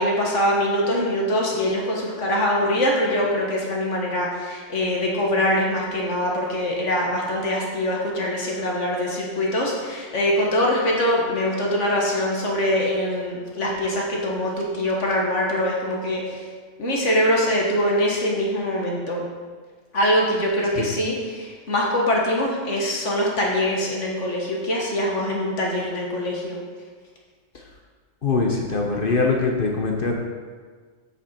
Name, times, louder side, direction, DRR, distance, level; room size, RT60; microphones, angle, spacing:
voice 1, 0.0-16.5 16.8-19.2 19.9-26.6, left 1 dB, 65° left, -2 dB, 1.8 m, -23 dB
voice 2, 28.2-30.1, left 4 dB, 45° left, 0 dB, 1.0 m, -22 dB
8.1 x 7.1 x 4.4 m, 1.5 s
omnidirectional pair, 1.4 m